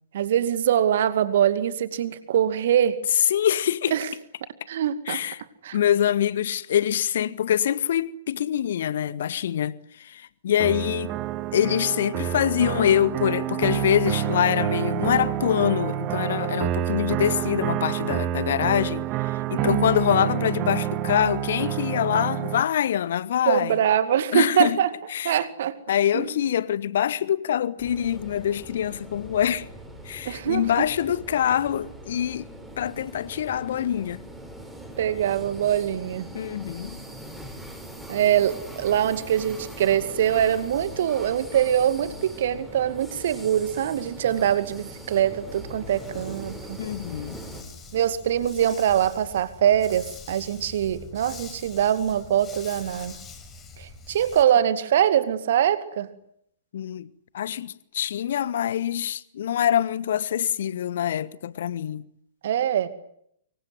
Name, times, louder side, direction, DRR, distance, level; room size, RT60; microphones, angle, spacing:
voice 1, 0.1-3.0 3.9-4.1 4.7-5.2 5.6-5.8 19.5-19.8 23.5-24.9 25.2-25.8 26.1-26.3 30.2-30.8 35.0-36.3 38.1-46.8 47.9-53.1 53.8-56.1 62.4-62.9, right 10 dB, 50° right, 2.3 m, -23 dB
voice 2, 3.3-3.9 5.1-5.4 5.7-11.2 11.5-19.0 19.5-23.8 24.3-24.8 25.1-25.4 25.9-29.7 30.0-32.5 32.8-34.2 36.3-37.0 46.8-47.4 56.7-57.1 57.3-62.1, left 10 dB, 50° left, 1.3 m, -25 dB
sound 1, 10.6-22.6, right 12 dB, 30° right, 1.3 m, -28 dB
sound 2, 27.8-47.6, right 1 dB, ahead, 5.5 m, -41 dB
Dog, 45.8-54.4, left 5 dB, 20° left, 5.0 m, -44 dB
25.5 x 23.5 x 9.6 m
figure-of-eight pair, 110°, 0 cm